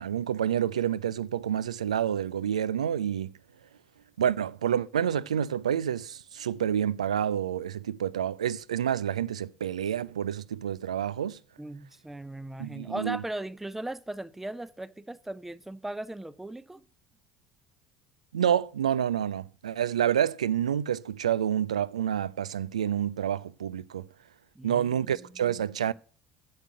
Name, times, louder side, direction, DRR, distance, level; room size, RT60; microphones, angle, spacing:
voice 1, 0.0-3.3 4.2-11.4 12.6-13.2 18.3-24.1 24.6-25.9, right 9 dB, 80° right, 0.4 m, -28 dB
voice 2, 11.6-16.8 24.5-25.6, right 1 dB, 5° right, 0.6 m, -38 dB
8.2 x 6.6 x 8.1 m
figure-of-eight pair, 65°, 4 cm